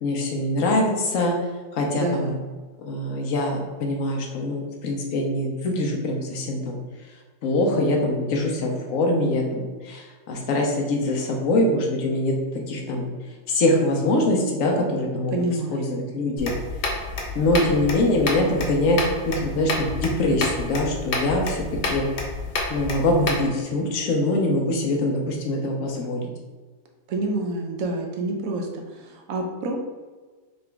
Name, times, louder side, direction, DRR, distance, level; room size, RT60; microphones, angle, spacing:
voice 1, 0.0-1.4 1.7-2.3 2.8-6.8 7.4-12.3 12.7-13.1 13.5-15.3 15.7-16.5 17.3-19.0 19.2-22.1 22.7-26.3, left 1 dB, 60° left, 1 dB, 1.0 m, -23 dB
voice 2, 1.9-2.3 15.3-15.9 27.1-29.8, right 2 dB, 65° right, 2 dB, 1.0 m, -28 dB
sound 1, 16.4-23.5, left 2 dB, 80° left, 1.5 m, -29 dB
3.9 x 3.6 x 3.4 m, 1.4 s
omnidirectional pair, 1.9 m